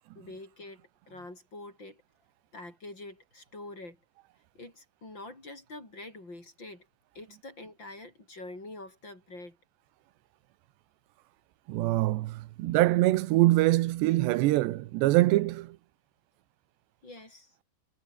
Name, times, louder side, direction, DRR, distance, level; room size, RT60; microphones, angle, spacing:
voice 1, 0.1-2.0 2.5-4.0 4.5-6.9 7.1-9.6 17.0-17.5, left 2 dB, 25° left, 6.4 m, -45 dB
voice 2, 11.7-15.8, right 17 dB, 80° right, 3.1 m, -24 dB
omnidirectional pair, 5.1 m